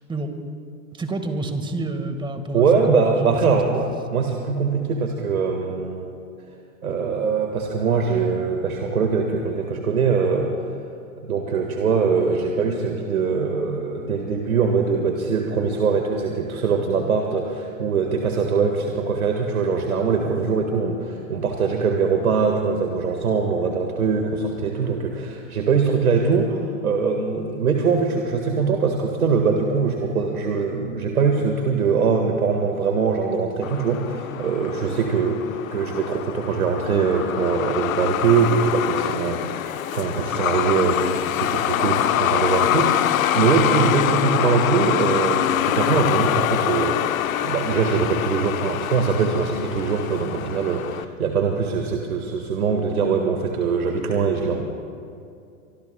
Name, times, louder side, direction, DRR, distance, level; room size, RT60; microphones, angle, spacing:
voice 1, 0.9-3.7, right 2 dB, 10° right, 7 dB, 1.6 m, -29 dB
voice 2, 2.5-6.1 6.8-10.7 11.2-54.8, right 5 dB, 85° right, 2 dB, 1.7 m, -22 dB
Truck, 33.6-51.0, left 11 dB, 70° left, 0.9 m, -25 dB
24.5 x 24.5 x 2.2 m, 2.5 s
hypercardioid pair, 110°, 42 cm